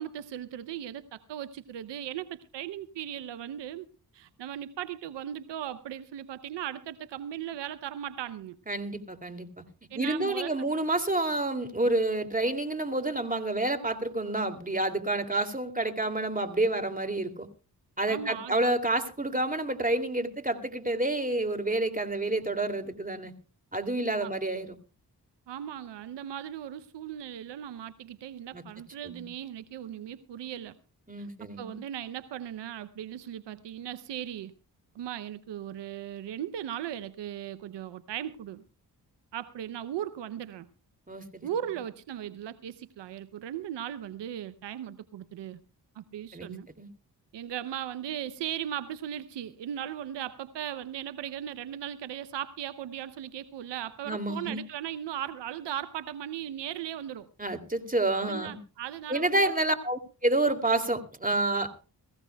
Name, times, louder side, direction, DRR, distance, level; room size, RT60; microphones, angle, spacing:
voice 1, 0.0-3.9 4.1-8.6 9.9-10.7 18.1-18.5 24.2-24.3 25.5-30.8 31.2-31.3 31.6-34.5 34.9-38.6 39.3-40.7 41.4-45.6 45.9-46.7 47.3-57.3 58.2-59.5, right 10 dB, 90° right, 15 dB, 0.7 m, -37 dB
voice 2, 8.7-9.6 10.0-17.5 18.0-23.3 23.7-24.7 28.5-28.6 29.0-29.3 31.1-31.8 41.1-41.5 46.3-46.9 54.1-54.6 57.4-58.6 59.1-61.7, right 2 dB, 20° right, 7 dB, 2.7 m, -29 dB
22.5 x 15.0 x 2.3 m, 0.34 s
supercardioid pair, 40°, 41 cm